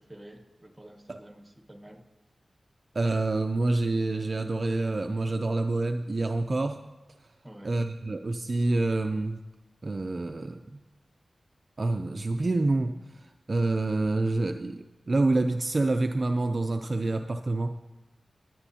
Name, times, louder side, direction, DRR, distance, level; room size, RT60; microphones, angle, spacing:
voice 1, 0.0-2.0 7.4-7.8, right 1 dB, 10° right, 4 dB, 1.3 m, -49 dB
voice 2, 2.9-6.8 7.6-9.4 9.8-10.8 11.8-17.8, right 2 dB, 45° right, 6 dB, 0.4 m, -27 dB
20.5 x 9.1 x 2.8 m, 1.1 s
wide cardioid pair, 95°, 0 cm